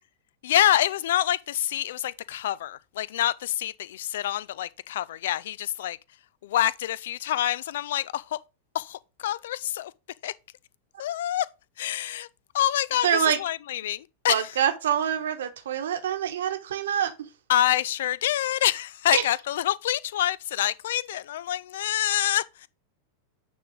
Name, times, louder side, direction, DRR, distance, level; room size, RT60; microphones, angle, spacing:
voice 1, 0.4-6.0 6.4-8.4 8.7-9.9 10.2-10.3 11.0-11.5 11.8-12.3 12.5-14.5 17.5-22.7, left 12 dB, 55° left, 0.4 m, -26 dB
voice 2, 13.0-13.4 14.3-17.3 19.1-19.2, right 9 dB, 60° right, 1.1 m, -25 dB
9.1 x 3.6 x 3.8 m
figure-of-eight pair, 90°, 0 cm